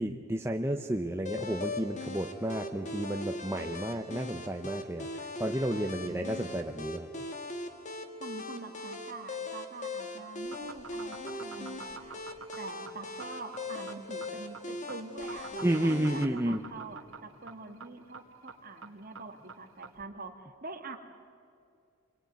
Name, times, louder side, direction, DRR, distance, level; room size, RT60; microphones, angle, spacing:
voice 1, 0.0-7.1 15.6-16.6, right 1 dB, 10° right, 3 dB, 0.8 m, -31 dB
sound 1, 1.3-16.3, left 2 dB, 35° left, 1.8 m, -40 dB
voice 2, 5.8-6.6 8.2-12.2 12.6-21.0, right 3 dB, 40° right, 4 dB, 2.1 m, -45 dB
sound 2, 10.4-20.0, right 5 dB, 65° right, 2.0 m, -47 dB
28.0 x 22.5 x 9.4 m, 2.4 s
head